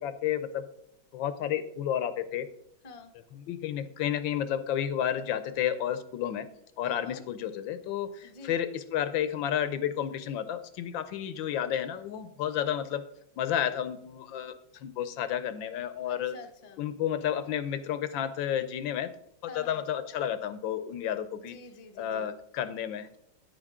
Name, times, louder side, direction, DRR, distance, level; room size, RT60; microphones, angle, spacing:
voice 1, 0.0-0.6 1.1-2.5 3.3-6.5 6.8-13.0 13.4-16.4 16.8-19.1 19.5-21.6 22.0-23.2, left 10 dB, 75° left, 12 dB, 1.3 m, -31 dB
voice 2, 2.8-3.2 6.8-7.2 8.2-8.6 16.0-16.9 19.5-19.8 21.3-22.3, left 4 dB, 45° left, 5 dB, 0.5 m, -48 dB
9.9 x 9.0 x 3.6 m, 0.71 s
omnidirectional pair, 2.3 m